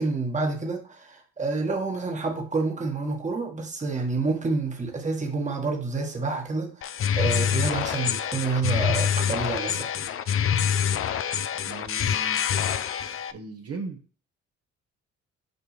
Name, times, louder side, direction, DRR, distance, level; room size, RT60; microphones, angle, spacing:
voice 1, 0.0-9.9, right 3 dB, 25° right, 1.6 m, -28 dB
sound 1, 6.8-13.3, left 8 dB, 45° left, 0.5 m, -26 dB
voice 2, 11.7-12.4 13.3-14.0, right 3 dB, 55° right, 1.4 m, -37 dB
6.8 x 5.3 x 3.4 m
cardioid pair, 90°, 30 cm